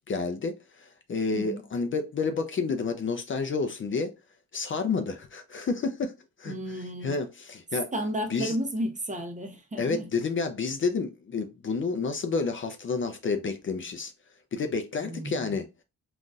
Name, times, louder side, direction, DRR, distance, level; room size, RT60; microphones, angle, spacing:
voice 1, 0.1-4.1 4.5-6.1 6.4-6.5 7.0-7.9 8.3-8.6 9.8-14.1 14.5-15.7, left 4 dB, 40° left, 0.5 m, -30 dB
voice 2, 6.5-7.2 7.9-10.1 15.0-15.5, equal, 25° right, 0.8 m, -33 dB
3.8 x 2.5 x 2.3 m
cardioid pair, 100°, 30 cm